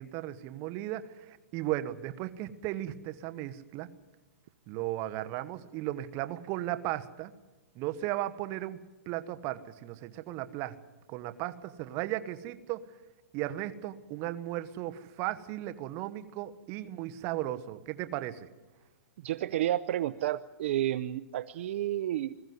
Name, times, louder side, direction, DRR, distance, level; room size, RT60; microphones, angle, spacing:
voice 1, 0.0-3.9 4.7-7.3 7.7-8.8 9.1-10.7 11.1-12.8 13.3-18.5, right 14 dB, 35° right, 10 dB, 1.3 m, -36 dB
voice 2, 19.2-22.4, right 13 dB, 55° right, 13 dB, 0.7 m, -31 dB
21.0 x 14.5 x 9.5 m, 1.2 s
hypercardioid pair, 150°, 8 cm